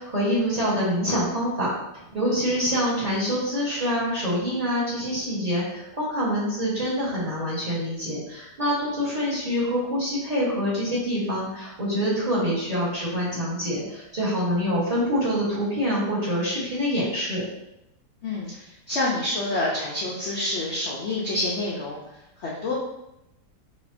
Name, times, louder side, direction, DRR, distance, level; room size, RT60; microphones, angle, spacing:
voice 1, 0.0-1.7 2.1-17.4, equal, 25° right, -8 dB, 1.1 m, -26 dB
voice 2, 18.2-22.0 22.4-22.7, left 2 dB, 65° left, -4 dB, 0.7 m, -27 dB
5.2 x 2.9 x 2.6 m, 0.86 s
omnidirectional pair, 1.9 m